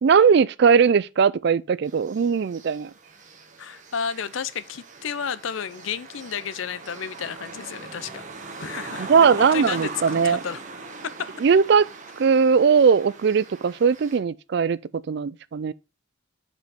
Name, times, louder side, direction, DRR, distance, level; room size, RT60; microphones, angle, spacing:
voice 1, 0.0-2.9 9.0-10.4 11.4-11.9 12.2-14.8 15.1-15.7, right 6 dB, 55° right, 0.3 m, -19 dB
sound 1, 1.8-14.2, right 3 dB, 35° right, 1.1 m, -40 dB
voice 2, 3.6-8.2 8.6-10.6 11.0-11.3, left 7 dB, 70° left, 0.5 m, -32 dB
5.2 x 5.2 x 5.7 m
head